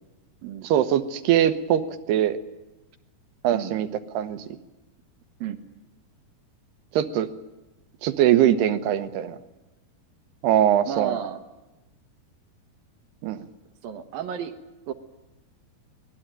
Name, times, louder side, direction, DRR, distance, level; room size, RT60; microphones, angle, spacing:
voice 1, 0.6-1.8 2.1-2.4 3.4-3.9 4.1-4.4 6.9-7.3 8.0-9.4 10.4-11.2 13.2-13.4, right 11 dB, 85° right, 10 dB, 3.2 m, -21 dB
voice 2, 10.8-11.4 13.2-13.3 13.8-14.5 14.9-15.0, right 9 dB, 70° right, 7 dB, 2.9 m, -32 dB
24.5 x 20.0 x 9.0 m, 1.0 s
omnidirectional pair, 4.7 m